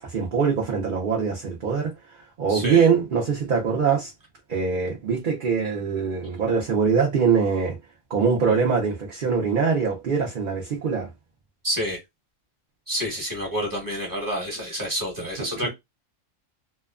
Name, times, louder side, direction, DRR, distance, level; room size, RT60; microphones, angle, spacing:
voice 1, 0.0-1.9 2.4-4.1 4.5-7.8 8.1-11.1 15.6-15.7, right 6 dB, 50° right, 0.7 m, -23 dB
voice 2, 2.5-2.9 11.6-12.0 12.9-15.7, equal, 15° right, 1.1 m, -28 dB
2.9 x 2.2 x 2.3 m
omnidirectional pair, 1.3 m